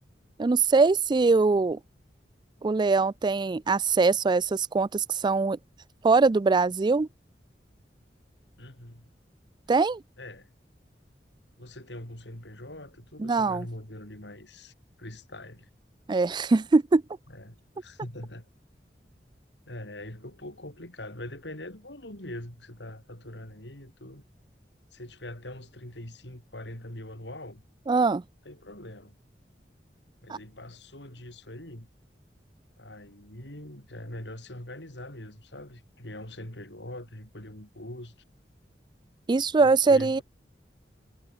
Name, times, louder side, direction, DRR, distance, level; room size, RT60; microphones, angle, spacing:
voice 1, 0.4-1.8 2.6-5.6 6.0-7.1 9.7-10.0 13.2-13.7 16.1-17.0 27.9-28.2 30.3-30.4 39.3-40.2, right 4 dB, 25° right, 0.4 m, -22 dB
voice 2, 8.6-9.1 10.2-10.5 11.6-15.7 17.3-18.5 19.7-24.2 24.9-27.6 28.4-29.2 30.2-31.9 32.8-38.1 39.6-40.2, left 1 dB, 80° left, 5.9 m, -43 dB
head